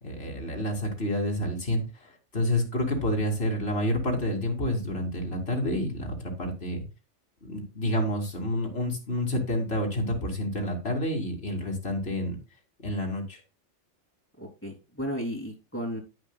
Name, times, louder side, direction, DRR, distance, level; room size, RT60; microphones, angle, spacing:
voice 1, 0.0-6.8 7.4-12.4 12.8-13.4, left 1 dB, 55° left, 1 dB, 2.9 m, -29 dB
voice 2, 14.4-16.0, equal, 10° left, 0 dB, 3.1 m, -34 dB
10.5 x 9.6 x 2.3 m, 0.29 s
omnidirectional pair, 1.2 m